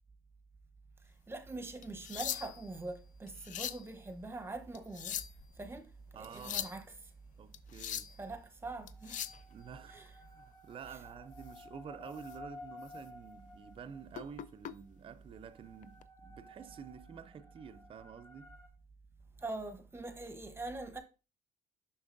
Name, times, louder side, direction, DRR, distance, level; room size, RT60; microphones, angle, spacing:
voice 1, 1.3-5.2 5.6-5.9 6.2-6.8 8.2-9.2 9.9-10.1 10.9-11.0 19.4-21.0, right 2 dB, 15° right, 1.0 m, -43 dB
Battle Dagger Sharpen, 1.8-2.7 3.3-3.9 4.7-5.5 6.2-6.8 7.5-8.2 8.9-9.4 11.5-11.6 12.1-12.4 12.8-13.0 14.1-14.7 15.8-16.0, left 10 dB, 50° left, 0.4 m, -40 dB
voice 2, 6.1-6.8 7.4-8.2 9.5-18.5, right 7 dB, 35° right, 0.4 m, -50 dB
sound 1, 8.9-14.5 15.4-18.7, left 2 dB, 25° left, 1.4 m, -54 dB
6.2 x 5.8 x 2.6 m
cardioid pair, 110°, 17 cm